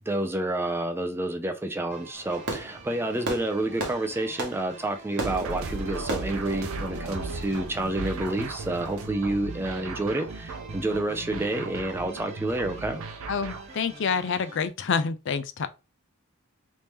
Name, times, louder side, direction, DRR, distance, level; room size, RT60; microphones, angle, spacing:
voice 1, 0.1-13.0, right 1 dB, 10° right, 0.4 m, -29 dB
sound 1, 1.9-14.7, right 2 dB, 30° right, 0.9 m, -47 dB
Fireworks, 2.1-7.8, right 2 dB, 55° right, 1.1 m, -37 dB
sound 2, 5.2-13.8, right 3 dB, 70° right, 0.6 m, -36 dB
voice 2, 13.3-15.7, left 5 dB, 55° left, 0.4 m, -27 dB
3.1 x 2.7 x 3.5 m
head